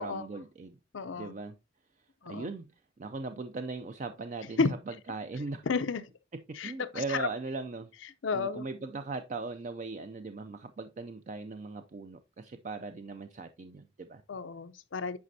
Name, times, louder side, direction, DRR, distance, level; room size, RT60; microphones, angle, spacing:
voice 1, 0.0-0.8 1.2-1.6 2.3-2.7 3.0-5.7 6.3-7.9 8.3-14.2, right 3 dB, 40° right, 0.4 m, -39 dB
voice 2, 0.9-1.3 2.3-2.5 4.6-4.7 5.7-6.0 6.6-6.7 8.2-8.6 14.3-15.2, left 4 dB, 85° left, 0.6 m, -31 dB
9.5 x 5.1 x 2.7 m
head